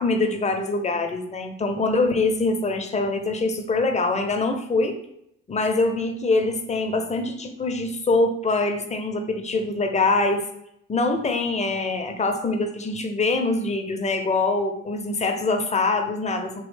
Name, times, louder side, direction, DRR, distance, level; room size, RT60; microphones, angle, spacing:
voice 1, 0.0-5.0 5.5-10.4 10.9-16.6, left 3 dB, 20° left, 5 dB, 0.5 m, -24 dB
3.0 x 3.0 x 3.2 m, 0.76 s
hypercardioid pair, 45°, 38 cm